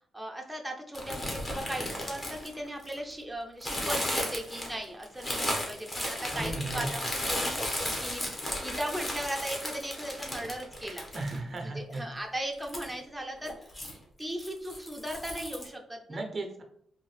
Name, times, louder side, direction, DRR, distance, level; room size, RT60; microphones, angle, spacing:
voice 1, 0.1-11.1 11.6-13.8 14.2-16.2, right 1 dB, 5° right, 1 dB, 0.7 m, -38 dB
sound 1, 0.9-3.1 3.6-11.6 11.9-12.0 12.6-12.9 13.4-14.0 14.4-15.7, left 1 dB, 30° left, 1.3 m, -34 dB
voice 2, 6.3-6.9 11.1-12.0 16.1-16.6, right 2 dB, 50° right, 3 dB, 0.7 m, -35 dB
3.6 x 2.5 x 3.3 m, 0.67 s
supercardioid pair, 60°, 0 cm